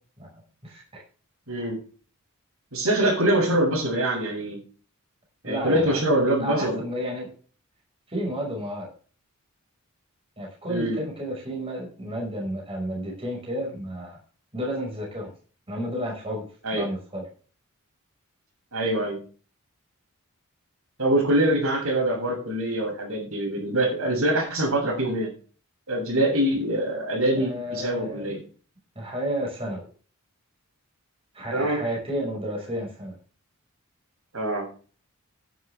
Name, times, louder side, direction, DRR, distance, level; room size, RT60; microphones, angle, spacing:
voice 1, 0.6-1.0 5.4-6.0 6.4-7.3 8.1-8.9 10.4-14.2 14.5-15.3 15.7-16.5 16.7-17.2 27.4-28.3 29.0-29.9 31.3-33.2, equal, 25° right, -1 dB, 5.8 m, -31 dB
voice 2, 1.5-1.8 2.7-4.6 5.4-6.8 10.7-11.0 16.6-16.9 18.7-19.2 21.0-25.3 25.9-28.4 31.5-31.8 34.3-34.6, right 1 dB, 70° right, 1 dB, 7.5 m, -24 dB
12.5 x 10.5 x 3.6 m, 0.38 s
head